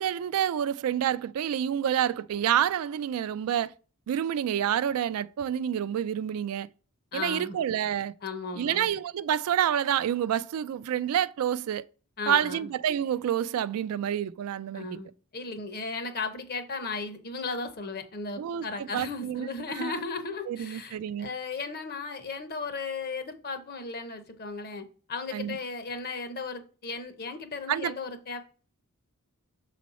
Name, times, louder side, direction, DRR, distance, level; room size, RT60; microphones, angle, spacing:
voice 1, 0.0-3.7 4.1-6.7 7.1-8.1 8.6-11.8 12.3-14.9 18.4-19.5 19.8-19.9 20.5-21.3 25.3-25.6 27.7-27.9, right 9 dB, 70° right, 0.3 m, -28 dB
voice 2, 7.1-7.6 8.2-8.9 12.2-12.7 14.7-15.1 15.3-28.4, left 4 dB, 45° left, 0.8 m, -36 dB
6.2 x 4.2 x 4.1 m
head